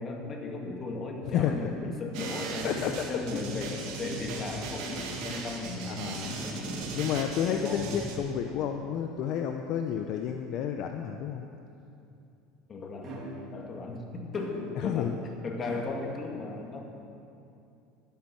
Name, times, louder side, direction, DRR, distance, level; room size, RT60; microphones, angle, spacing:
voice 1, 0.0-2.7 3.1-6.9 7.4-7.9 12.7-16.8, left 3 dB, 30° left, 2 dB, 1.7 m, -36 dB
voice 2, 1.3-1.7 2.6-3.1 3.3-3.4 5.8-6.4 6.9-11.5 14.8-15.1, left 9 dB, 55° left, 5 dB, 0.6 m, -31 dB
sound 1, 2.1-8.2, right 3 dB, 65° right, 2.0 m, -37 dB
sound 2, 13.0-13.6 14.3-15.0 15.7-15.8, right 2 dB, 35° right, 3.1 m, -43 dB
11.5 x 10.0 x 6.2 m, 2.7 s
supercardioid pair, 120°, 0 cm